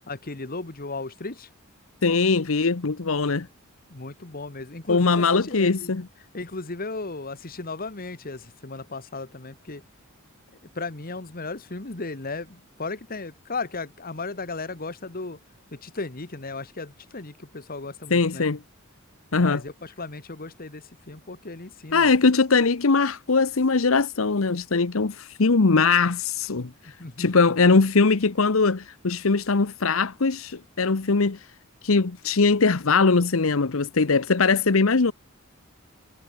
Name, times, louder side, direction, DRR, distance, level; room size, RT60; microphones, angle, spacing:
voice 1, 0.1-1.5 3.9-5.9 6.3-9.8 10.7-15.4 15.7-18.4 19.3-22.1 26.8-27.5, left 3 dB, 45° left, 1.6 m, -35 dB
voice 2, 2.0-3.5 4.9-6.1 18.1-18.6 19.3-19.6 21.9-26.9 27.2-31.4 31.8-35.1, left 4 dB, 70° left, 0.9 m, -21 dB
head